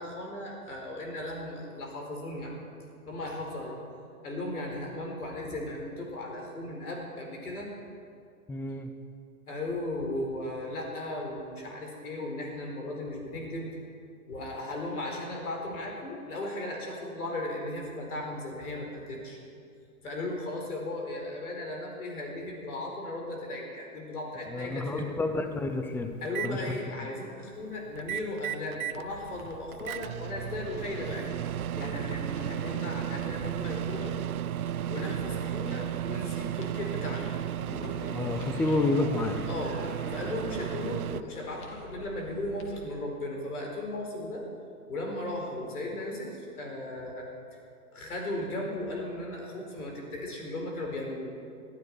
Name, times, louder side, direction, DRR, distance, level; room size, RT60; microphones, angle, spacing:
voice 1, 0.0-2.5 3.0-3.8 4.2-7.7 9.5-13.7 14.3-19.4 20.0-25.1 26.2-31.3 31.8-34.2 34.9-37.3 39.5-39.7 40.1-44.4 44.9-47.3 47.9-51.3, left 1 dB, 75° left, 0 dB, 4.9 m, -36 dB
voice 2, 8.5-8.9 24.4-26.1 26.4-26.6 26.9-27.1 38.1-39.5, left 2 dB, 5° left, 7 dB, 0.6 m, -29 dB
Microwave oven, 25.0-25.1 25.5-26.5 27.9-29.0 29.4-41.2, right 11 dB, 70° right, 0.6 m, -34 dB
sound 1, 29.0-42.8, left 2 dB, 30° left, 2.3 m, -49 dB
sound 2, 37.5-42.0, left 1 dB, 55° left, 4.5 m, -45 dB
21.0 x 12.5 x 4.9 m, 2.4 s
hypercardioid pair, 120°, 44 cm